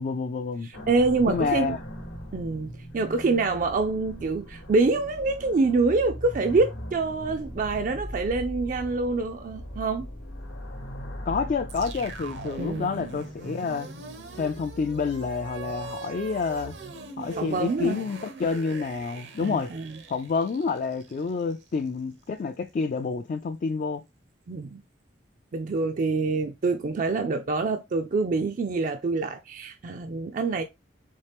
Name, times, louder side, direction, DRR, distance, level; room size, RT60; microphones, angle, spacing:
voice 1, 0.0-0.7 1.3-1.8 11.3-13.9 14.3-16.7 17.2-19.7 20.1-24.0, left 4 dB, 45° left, 0.3 m, -28 dB
voice 2, 0.6-1.8 2.3-10.1 12.6-13.0 17.4-18.0 19.4-19.9 24.5-24.8 25.5-30.6, right 3 dB, 45° right, 0.4 m, -26 dB
sound 1, 0.7-13.8, equal, 80° left, 1.0 m, -40 dB
sound 2, 11.7-21.9, right 3 dB, 70° right, 0.7 m, -41 dB
4.2 x 3.2 x 3.4 m
head